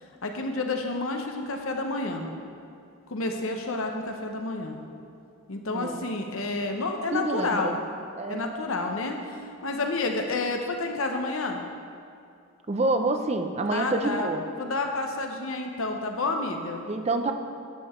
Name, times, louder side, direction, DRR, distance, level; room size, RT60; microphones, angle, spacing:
voice 1, 0.2-2.3 3.1-4.8 5.5-7.8 8.3-11.6 13.7-14.3 14.6-16.8, left 2 dB, 75° left, 3 dB, 0.9 m, -30 dB
voice 2, 5.7-6.0 7.1-7.8 8.2-8.5 12.7-14.4 16.9-17.3, right 2 dB, 30° right, 6 dB, 0.5 m, -27 dB
10.5 x 6.8 x 4.4 m, 2.5 s
head